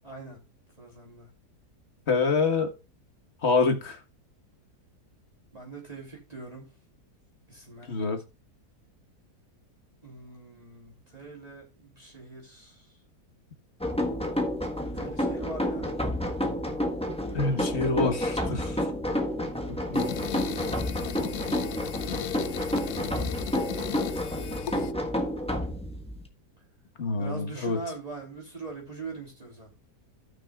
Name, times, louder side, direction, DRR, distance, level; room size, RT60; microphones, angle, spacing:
voice 1, 0.0-0.4 0.8-1.3 5.5-6.8 7.5-7.9 10.0-13.0 14.9-15.9 27.2-29.7, right 3 dB, 20° right, 3.2 m, -42 dB
voice 2, 2.1-2.7 3.4-4.0 7.9-8.2 17.3-18.8 19.7-20.1 27.0-27.8, left 4 dB, 40° left, 1.7 m, -26 dB
sound 1, 13.8-26.3, left 1 dB, 5° left, 1.2 m, -30 dB
sound 2, 19.9-24.9, left 11 dB, 70° left, 1.1 m, -36 dB
17.0 x 6.2 x 2.4 m
omnidirectional pair, 1.8 m